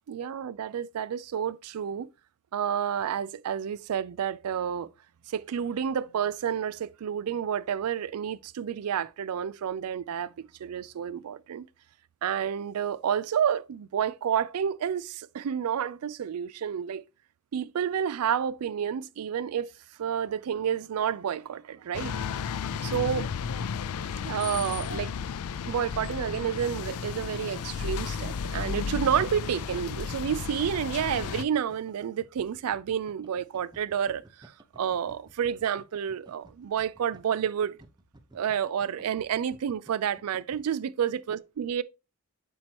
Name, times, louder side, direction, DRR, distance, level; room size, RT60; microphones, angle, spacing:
voice 1, 0.1-2.1 2.5-4.9 5.3-11.7 12.2-17.0 17.5-19.7 20.0-22.1 22.8-23.3 24.2-25.1 25.7-37.8 38.3-41.8, right 8 dB, 85° right, 0.4 m, -30 dB
sound 1, 21.9-31.4, left 6 dB, 80° left, 0.4 m, -33 dB
sound 2, 25.5-40.6, right 1 dB, 20° right, 0.6 m, -54 dB
7.4 x 4.5 x 2.9 m
head